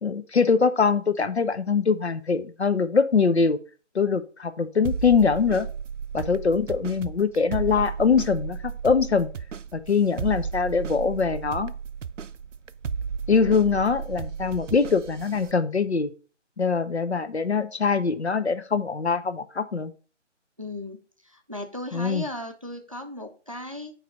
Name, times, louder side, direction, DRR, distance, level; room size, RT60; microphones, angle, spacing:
voice 1, 0.0-3.6 3.9-5.7 6.1-9.3 9.7-11.7 13.3-16.1 16.6-19.9 21.9-22.3, left 5 dB, 60° left, 11 dB, 0.9 m, -23 dB
sound 1, 4.8-15.5, right 6 dB, 80° right, 0.6 m, -34 dB
voice 2, 20.6-23.9, left 1 dB, 30° right, 5 dB, 0.6 m, -36 dB
9.1 x 3.4 x 4.8 m, 0.37 s
figure-of-eight pair, 170°, 37 cm